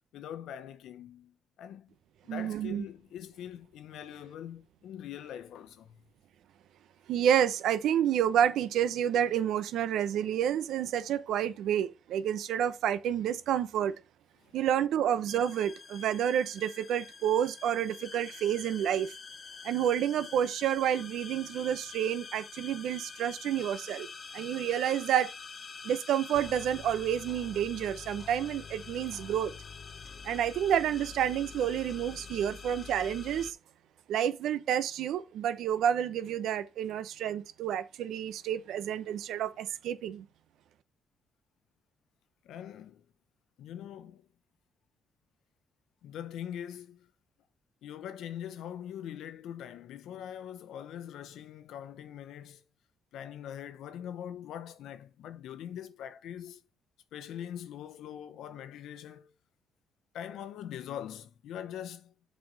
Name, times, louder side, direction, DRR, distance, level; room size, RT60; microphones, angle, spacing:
voice 1, 0.1-1.9 2.2-6.0 14.4-14.6 42.4-43.0 43.6-44.3 46.0-47.1 47.8-52.6 53.1-56.6 57.1-59.3 60.1-62.1, left 10 dB, 80° left, 0.8 m, -43 dB
voice 2, 2.3-2.8 7.1-13.9 14.5-19.1 19.6-24.1 24.3-25.3 25.8-29.5 30.2-33.6 34.1-40.3, right 10 dB, 80° right, 0.9 m, -29 dB
sound 1, 15.3-33.5, left 5 dB, 45° left, 0.7 m, -46 dB
7.6 x 4.3 x 5.2 m
cardioid pair, 90°, 0 cm